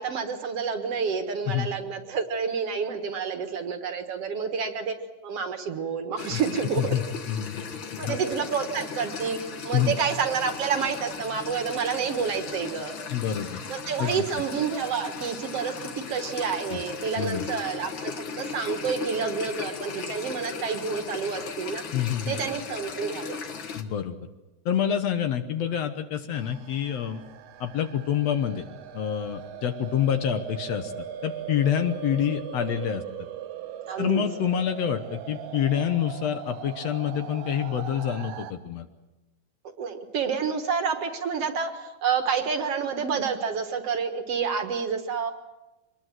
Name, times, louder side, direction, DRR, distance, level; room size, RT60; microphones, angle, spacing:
voice 1, 0.0-5.0 5.2-7.0 8.0-13.0 13.7-15.8 16.1-21.8 22.3-23.4 33.9-34.2 39.8-45.3, right 6 dB, 55° right, 7 dB, 2.3 m, -29 dB
sound 1, 6.2-23.8, left 6 dB, 50° left, 1.8 m, -37 dB
voice 2, 6.8-7.6 7.9-8.2 9.7-9.9 13.1-13.6 14.0-14.2 16.7-16.8 17.2-17.5 21.9-22.4 23.8-24.1 24.7-27.2 27.6-28.6 28.9-30.9 31.2-33.0 34.0-38.9, left 9 dB, 65° left, 8 dB, 2.0 m, -27 dB
sound 2, 26.3-38.5, right 10 dB, 75° right, 2.3 m, -40 dB
24.5 x 21.0 x 7.7 m, 1.0 s
omnidirectional pair, 3.5 m